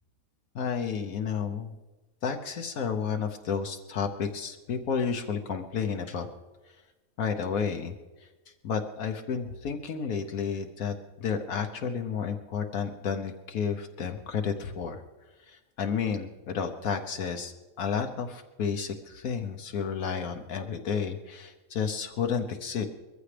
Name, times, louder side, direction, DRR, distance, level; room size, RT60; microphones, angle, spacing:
voice 1, 0.5-1.7 2.2-6.3 7.2-7.9 8.6-15.0 15.5-17.5 17.8-22.9, left 6 dB, 75° left, 5 dB, 1.3 m, -31 dB
21.5 x 15.0 x 3.3 m, 1.2 s
omnidirectional pair, 1.5 m